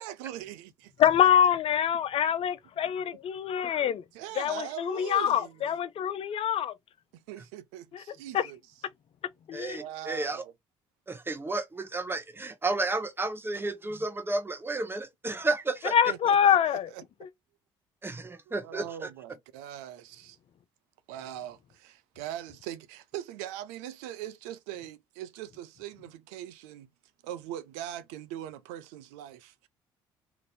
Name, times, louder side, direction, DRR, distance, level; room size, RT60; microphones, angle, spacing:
voice 1, 0.0-0.9 3.1-3.2 4.1-5.5 7.1-8.6 9.7-10.5 16.1-17.0 18.6-20.4 21.1-26.9 27.2-29.7, right 11 dB, 80° right, 0.4 m, -41 dB
voice 2, 1.0-4.0 4.4-6.7 7.9-8.0 8.3-8.5 9.5-9.8 15.9-16.9 17.2-17.3, left 9 dB, 50° left, 0.5 m, -25 dB
voice 3, 9.5-10.4 11.1-15.9 18.0-19.1, right 2 dB, 20° right, 0.9 m, -32 dB
2.9 x 2.6 x 3.1 m
hypercardioid pair, 55°, 12 cm